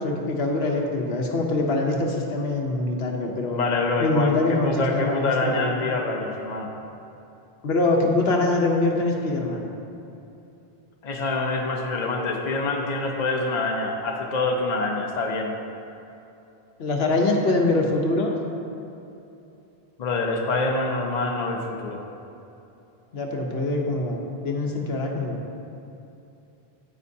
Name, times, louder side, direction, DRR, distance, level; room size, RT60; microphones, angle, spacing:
voice 1, 0.0-3.6 4.0-5.7 7.6-9.7 16.8-18.3 23.1-25.4, left 2 dB, 80° left, 1 dB, 1.1 m, -24 dB
voice 2, 3.5-6.7 11.0-15.5 20.0-22.0, left 2 dB, 45° left, 1 dB, 0.8 m, -26 dB
9.6 x 8.6 x 2.8 m, 2.8 s
omnidirectional pair, 1.0 m